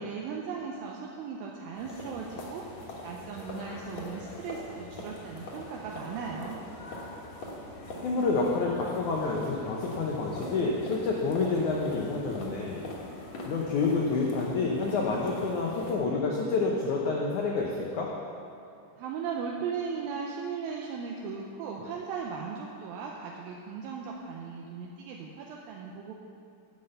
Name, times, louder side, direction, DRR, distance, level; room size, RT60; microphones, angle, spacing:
voice 1, 0.0-6.6 19.0-26.2, right 5 dB, 80° right, -1 dB, 2.2 m, -37 dB
sound 1, 1.7-15.9, left 1 dB, 60° left, 2.1 m, -42 dB
voice 2, 8.0-12.8 13.5-18.1, left 3 dB, 85° left, -2 dB, 1.7 m, -28 dB
10.0 x 5.8 x 7.9 m, 2.6 s
omnidirectional pair, 4.7 m